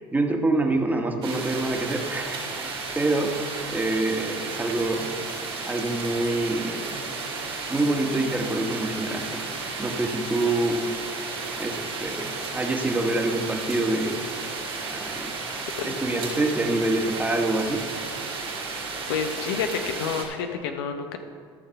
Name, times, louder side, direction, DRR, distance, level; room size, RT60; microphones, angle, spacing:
voice 1, 0.1-3.3 3.7-5.1 5.7-7.0 7.7-9.4 9.8-10.8 11.6-14.2 14.9-15.3 15.8-17.8, right 2 dB, 15° right, 2 dB, 1.5 m, -26 dB
sound 1, 1.2-20.3, right 4 dB, 85° right, 2.6 m, -33 dB
voice 2, 19.1-21.2, left 6 dB, 80° left, 6 dB, 0.8 m, -29 dB
13.0 x 5.7 x 5.7 m, 2.1 s
hypercardioid pair, 75°, 13 cm